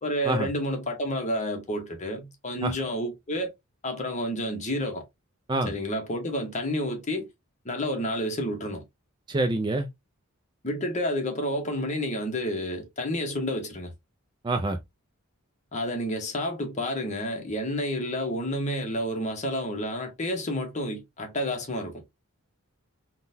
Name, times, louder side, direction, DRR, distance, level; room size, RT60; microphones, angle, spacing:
voice 1, 0.0-3.5 3.8-5.0 5.7-7.3 7.6-8.8 10.6-13.9 15.7-22.0, equal, 30° left, 0.8 m, -30 dB
voice 2, 9.3-9.9 14.4-14.8, right 2 dB, 20° right, 0.3 m, -26 dB
3.7 x 2.2 x 2.6 m
head